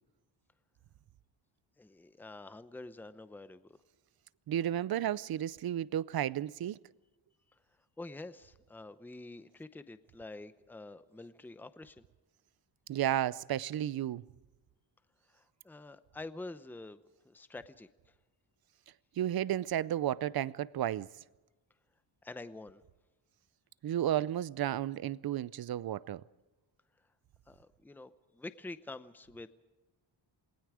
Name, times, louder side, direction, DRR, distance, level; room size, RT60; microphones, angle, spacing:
voice 1, 1.8-3.8 8.0-12.0 15.3-17.9 22.2-22.8 27.5-29.6, left 2 dB, 5° left, 0.7 m, -47 dB
voice 2, 4.5-6.8 12.9-14.2 19.2-21.1 23.8-26.2, right 11 dB, 55° right, 0.6 m, -32 dB
28.0 x 20.0 x 4.9 m
wide cardioid pair, 150°, 46 cm